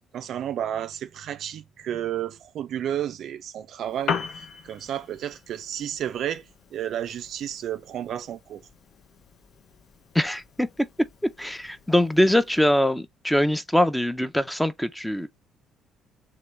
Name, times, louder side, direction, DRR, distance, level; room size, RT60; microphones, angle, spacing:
voice 1, 0.1-8.6, right 10 dB, 60° right, 0.4 m, -32 dB
Piano, 3.8-12.8, left 6 dB, 50° left, 0.6 m, -39 dB
voice 2, 10.1-10.7 11.4-15.3, left 1 dB, 5° left, 0.6 m, -22 dB
3.0 x 2.9 x 3.3 m
figure-of-eight pair, 50°, 0 cm